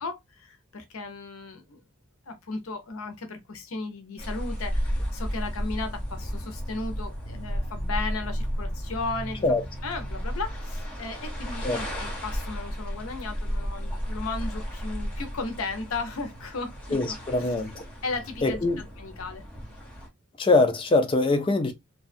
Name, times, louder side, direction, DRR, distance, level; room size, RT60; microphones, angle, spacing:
voice 1, 0.0-1.8 2.3-17.5 18.0-19.4, left 3 dB, 75° left, 0.6 m, -35 dB
sound 1, 4.2-20.1, equal, 5° left, 0.9 m, -33 dB
voice 2, 16.9-17.7 18.4-18.8 20.4-21.7, left 2 dB, 25° left, 0.3 m, -23 dB
2.6 x 2.3 x 2.3 m
head